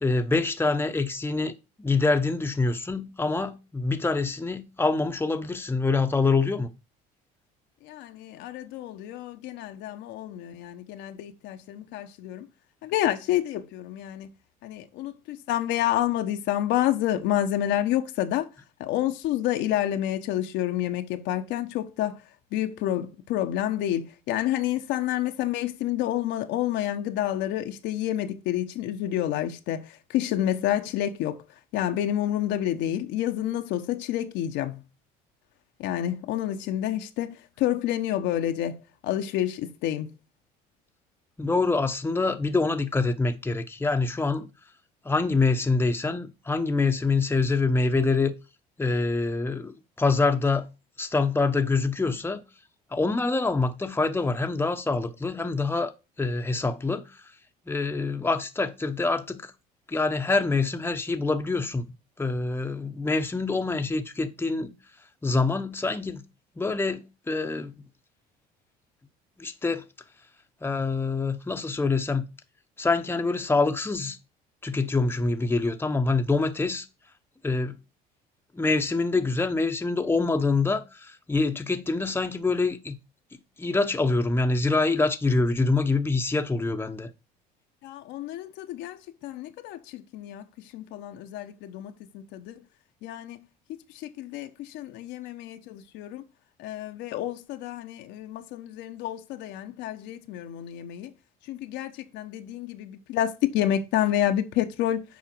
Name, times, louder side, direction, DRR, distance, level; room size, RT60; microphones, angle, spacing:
voice 1, 0.0-1.5 1.8-6.7 41.4-44.5 45.0-48.3 48.8-50.7 51.0-52.4 52.9-55.9 56.2-57.0 57.7-59.5 59.9-61.9 62.2-64.7 65.2-66.2 66.6-67.7 69.4-69.8 70.6-72.3 72.8-74.2 74.6-76.9 77.4-77.8 78.5-83.0 83.6-87.1, left 3 dB, 10° left, 1.0 m, -25 dB
voice 2, 7.8-12.5 12.8-14.3 14.6-18.5 18.8-22.2 22.5-31.4 31.7-34.8 35.8-38.8 39.0-40.1 87.8-90.4 90.7-92.6 93.0-93.4 93.7-96.2 96.6-101.1 101.5-105.0, left 12 dB, 70° left, 1.0 m, -29 dB
7.3 x 4.9 x 4.5 m
supercardioid pair, 75°, 20 cm